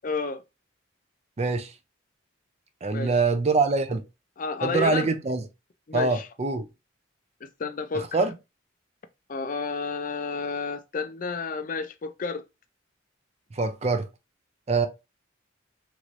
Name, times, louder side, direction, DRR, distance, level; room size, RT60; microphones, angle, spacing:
voice 1, 0.0-0.4 2.9-3.1 4.4-5.1 5.9-6.3 7.4-8.2 9.3-12.4, left 4 dB, 40° left, 0.4 m, -31 dB
voice 2, 1.4-1.7 2.8-4.0 4.6-5.4 5.9-6.7 7.9-8.3 13.5-14.1 14.7-14.9, right 3 dB, 30° right, 0.4 m, -24 dB
3.0 x 3.0 x 2.5 m
head